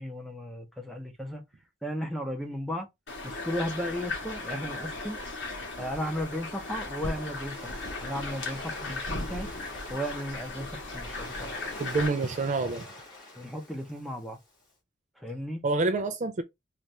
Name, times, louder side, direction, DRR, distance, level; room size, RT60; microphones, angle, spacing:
voice 1, 0.0-1.4 1.8-2.9 3.2-5.2 5.8-7.7 8.0-9.5 9.9-11.5 13.4-14.4 15.2-15.6, equal, ahead, 0.9 m, -35 dB
sound 1, 3.1-12.1, left 2 dB, 65° left, 1.5 m, -37 dB
Waves surf, 6.4-14.6, left 1 dB, 25° left, 1.6 m, -47 dB
voice 2, 11.8-12.9 15.6-16.4, right 3 dB, 40° right, 0.4 m, -27 dB
4.1 x 2.5 x 3.3 m
head